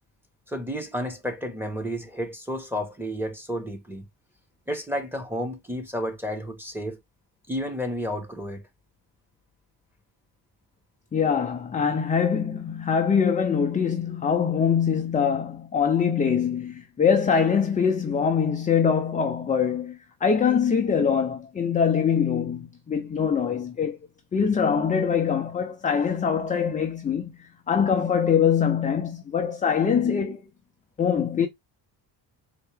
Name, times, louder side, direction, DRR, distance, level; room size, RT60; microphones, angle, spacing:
voice 1, 0.5-4.0 4.7-7.0 7.5-8.6, equal, 5° right, 1.1 m, -31 dB
voice 2, 11.1-24.0 24.3-30.4 31.0-31.5, left 7 dB, 20° left, 0.4 m, -23 dB
4.4 x 2.8 x 3.2 m
cardioid pair, 145°, 43 cm